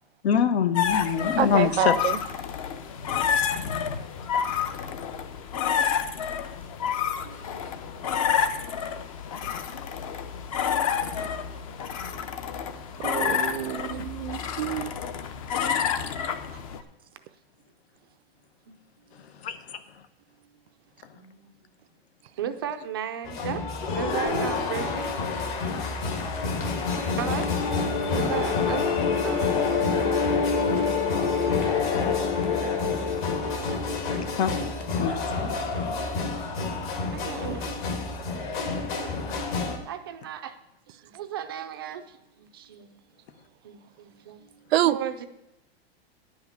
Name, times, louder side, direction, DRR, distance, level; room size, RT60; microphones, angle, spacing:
voice 1, 0.2-2.0 4.7-4.8 19.4-19.8 34.4-34.5 35.0-35.2, left 8 dB, 85° left, 1.1 m, -24 dB
sound 1, 0.7-16.8, left 7 dB, 35° left, 0.6 m, -29 dB
voice 2, 1.4-2.2 13.0-15.0 34.1-34.2 44.7-45.0, right 13 dB, 75° right, 0.6 m, -27 dB
voice 3, 5.7-6.0 7.2-7.7 14.4-14.5 16.2-16.4 18.7-19.2 21.1-21.5 22.4-23.6 23.9-25.1 27.2-27.5 28.0-29.7 37.1-37.9 38.5-39.2 39.9-40.6 40.9-42.9 43.6-45.3, right 9 dB, 25° right, 0.4 m, -36 dB
sound 2, 23.2-39.8, left 4 dB, 50° left, 1.7 m, -30 dB
sound 3, 26.1-35.2, left 5 dB, 65° left, 2.9 m, -28 dB
10.5 x 5.8 x 8.0 m
supercardioid pair, 180°, 31 cm